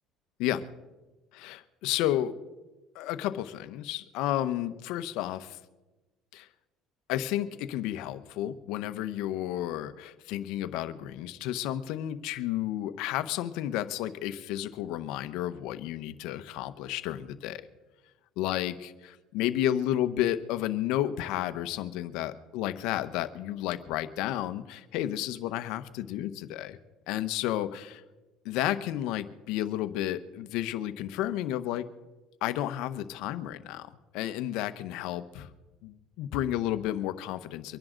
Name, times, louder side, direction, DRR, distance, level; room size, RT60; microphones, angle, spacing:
voice 1, 1.3-2.3 2.9-5.6 6.3-6.5 7.1-17.7 18.4-26.8 27.1-28.0 28.4-31.9 32.4-35.5 35.8-37.8, left 12 dB, 75° left, 12 dB, 1.0 m, -32 dB
25.0 x 10.5 x 3.9 m, 1.1 s
supercardioid pair, 95°, 0 cm